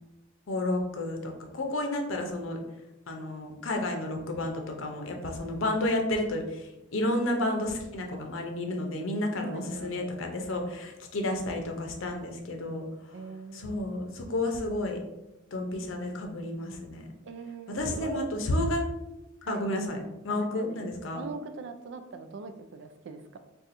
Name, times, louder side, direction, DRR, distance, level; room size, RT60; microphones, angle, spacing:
voice 1, 0.5-2.6 3.1-12.9 13.5-15.0 15.5-17.0 17.7-18.8 19.5-20.0 20.2-21.2, left 1 dB, 80° left, 3 dB, 0.6 m, -31 dB
voice 2, 9.4-10.4 13.1-14.4 17.2-18.3 19.4-19.7 20.3-20.8 21.1-23.4, right 4 dB, 65° right, 8 dB, 0.3 m, -41 dB
2.5 x 2.3 x 4.0 m, 0.95 s
head